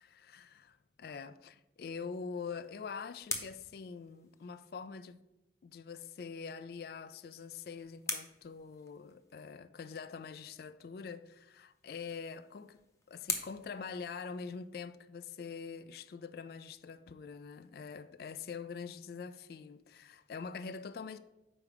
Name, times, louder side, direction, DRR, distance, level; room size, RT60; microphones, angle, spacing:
voice 1, 0.0-5.2 5.6-12.8 13.1-21.2, left 5 dB, 55° left, 0.3 m, -44 dB
sound 1, 2.4-4.9 7.0-9.4 11.6-14.8, left 3 dB, 15° left, 0.6 m, -44 dB
5.0 x 4.7 x 6.3 m
head